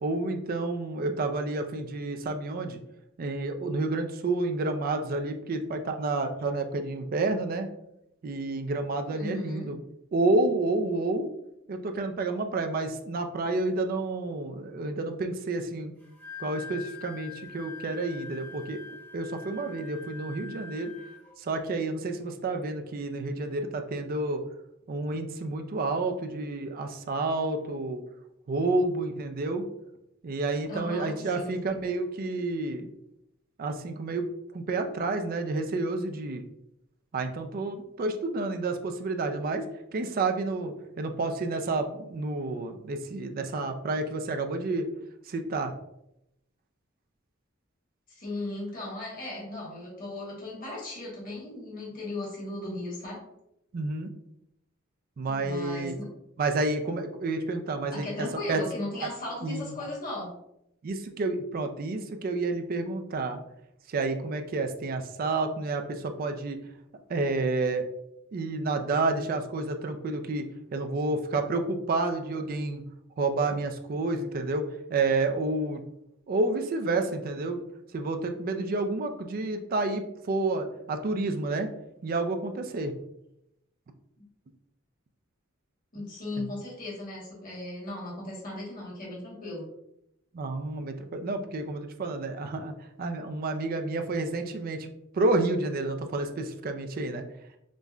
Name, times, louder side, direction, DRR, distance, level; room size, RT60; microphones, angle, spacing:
voice 1, 0.0-2.8 3.2-7.7 8.2-9.8 10.1-11.3 11.7-15.9 16.4-20.9 21.4-24.4 24.9-28.0 28.5-29.7 30.2-32.9 33.6-36.4 37.1-39.7 39.9-44.9 45.3-45.7 53.7-54.1 55.2-55.9 56.4-58.6 59.0-59.1 59.4-59.6 60.8-63.4 63.9-66.6 67.1-67.9 68.3-70.5 70.7-72.8 73.2-74.6 74.9-75.8 76.3-77.6 77.9-81.7 82.0-82.9 86.4-86.5 90.3-97.2, right 2 dB, 45° right, 6 dB, 0.4 m, -30 dB
voice 2, 9.1-9.7 30.7-31.7 48.1-53.2 55.2-56.1 57.9-60.3 85.9-89.7, left 1 dB, 40° left, -5 dB, 1.2 m, -37 dB
Wind instrument woodwind instrument, 16.0-21.3, left 5 dB, 10° left, 0.5 m, -44 dB
5.1 x 2.1 x 2.3 m, 0.82 s
head